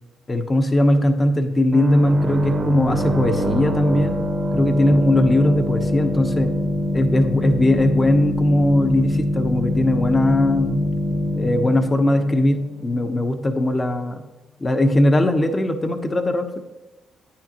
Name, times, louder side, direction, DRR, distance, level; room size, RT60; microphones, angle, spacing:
voice 1, 0.3-4.2 4.5-6.5 6.9-10.8 11.3-14.2 14.6-16.6, left 1 dB, 25° left, 7 dB, 1.0 m, -19 dB
sound 1, 1.7-13.2, left 1 dB, 40° right, 1.0 m, -24 dB
9.6 x 8.7 x 3.0 m, 1.0 s
cardioid pair, 90°, 0 cm